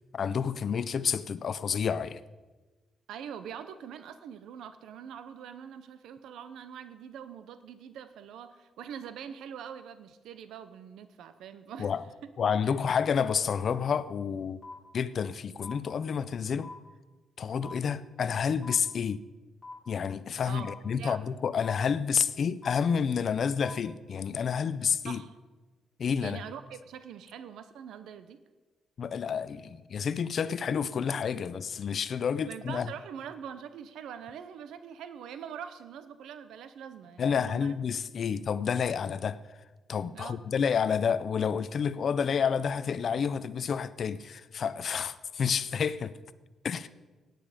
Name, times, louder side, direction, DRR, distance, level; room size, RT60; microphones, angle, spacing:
voice 1, 0.1-2.2 11.8-12.0 12.4-14.6 14.9-16.7 17.4-19.2 19.9-25.2 26.0-26.4 29.0-32.9 37.2-39.4 39.9-46.1 46.6-46.9, left 7 dB, 40° left, 0.5 m, -29 dB
voice 2, 3.1-11.9 12.6-12.8 20.4-20.7 21.0-21.2 25.0-25.3 26.2-28.4 32.5-37.7 40.1-40.4, right 8 dB, 90° right, 0.7 m, -43 dB
sound 1, 14.6-14.7 15.6-15.7 16.6-16.7 17.6-17.7 18.6-18.7 19.6-19.7 20.6-20.7 21.6-21.7 22.6-22.7 23.6-23.7, left 3 dB, 10° left, 3.0 m, -43 dB
17.0 x 9.3 x 5.0 m
cardioid pair, 170°, 0 cm